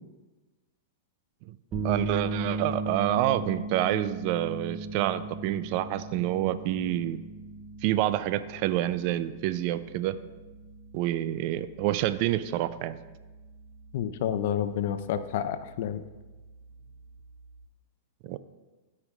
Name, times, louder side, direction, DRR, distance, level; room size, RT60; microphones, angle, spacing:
sound 1, 1.7-17.6, right 3 dB, 35° right, 0.8 m, -38 dB
voice 1, 1.8-7.2 7.8-10.2 10.9-13.0 18.2-18.4, right 13 dB, 50° right, 14 dB, 0.4 m, -28 dB
voice 2, 13.9-16.0, left 10 dB, 65° left, 11 dB, 0.5 m, -29 dB
13.5 x 5.4 x 2.4 m, 1.2 s
hypercardioid pair, 115°, 0 cm